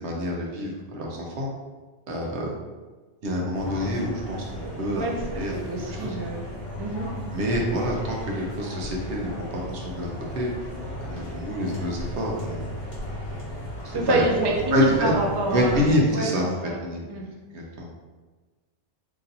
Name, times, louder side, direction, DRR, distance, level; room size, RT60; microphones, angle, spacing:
voice 1, 0.0-1.5 2.1-2.5 3.2-4.4 4.8-5.5 5.9-6.2 7.3-10.1 10.3-10.5 11.0-12.6 14.1-14.2 14.7-15.2 15.5-17.1 17.5-17.9, equal, 80° right, -2 dB, 1.1 m, -27 dB
sound 1, 3.5-16.0, left 1 dB, 55° left, 1.1 m, -35 dB
voice 2, 4.6-7.1 13.9-16.3 16.6-16.8 17.1-17.3, right 2 dB, 40° right, 0 dB, 0.3 m, -28 dB
3.0 x 2.6 x 4.0 m, 1.3 s
omnidirectional pair, 1.1 m